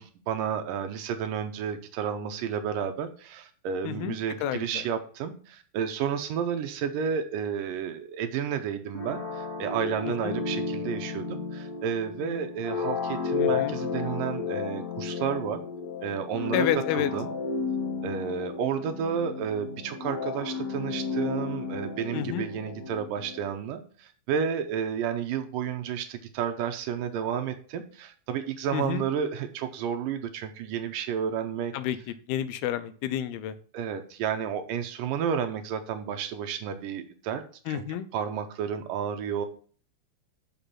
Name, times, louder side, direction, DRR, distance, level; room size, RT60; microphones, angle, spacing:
voice 1, 0.0-15.6 16.0-16.7 16.9-17.3 18.0-31.7 33.7-37.8 38.1-39.5, right 8 dB, 75° right, 7 dB, 2.2 m, -31 dB
voice 2, 3.8-4.8 10.2-10.4 13.4-13.8 16.5-17.1 22.1-22.5 28.7-29.0 31.7-32.0 32.3-33.5 37.7-38.1, left 11 dB, 85° left, 12 dB, 2.7 m, -30 dB
sound 1, 8.9-23.5, left 5 dB, 35° left, 1.9 m, -33 dB
7.0 x 6.1 x 5.7 m, 0.42 s
omnidirectional pair, 4.4 m